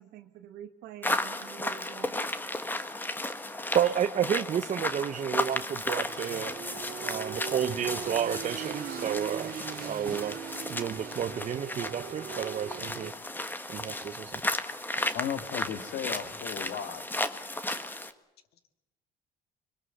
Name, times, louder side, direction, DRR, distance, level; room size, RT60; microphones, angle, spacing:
voice 1, 0.0-2.3, right 10 dB, 90° right, 4 dB, 1.7 m, -46 dB
sound 1, 1.0-18.1, left 2 dB, 10° left, 1.5 m, -34 dB
voice 2, 3.7-6.5 7.0-9.5 9.8-10.4 10.7-13.1 13.7-14.4, right 9 dB, 45° right, 8 dB, 1.0 m, -31 dB
sound 2, 6.1-13.1, right 9 dB, 60° right, 2.2 m, -40 dB
voice 3, 15.1-17.0, left 9 dB, 70° left, 9 dB, 2.2 m, -35 dB
24.5 x 22.0 x 7.9 m, 0.91 s
cardioid pair, 110°, 17 cm